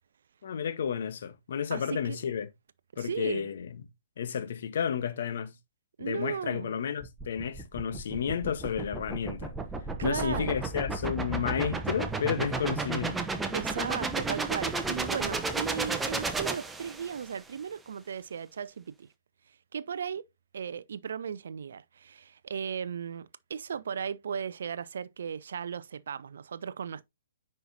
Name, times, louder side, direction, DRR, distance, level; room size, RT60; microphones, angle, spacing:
voice 1, 0.4-2.5 3.0-3.8 4.2-5.6 6.0-9.5 10.0-13.3, left 7 dB, 55° left, 1.3 m, -32 dB
voice 2, 1.7-2.2 2.9-3.5 6.0-6.8 10.0-10.7 13.5-19.1 19.7-20.2 20.5-27.0, right 7 dB, 60° right, 0.5 m, -36 dB
sound 1, 7.0-17.3, right 3 dB, 5° right, 0.9 m, -33 dB
9.2 x 5.6 x 2.8 m
figure-of-eight pair, 125°, 0 cm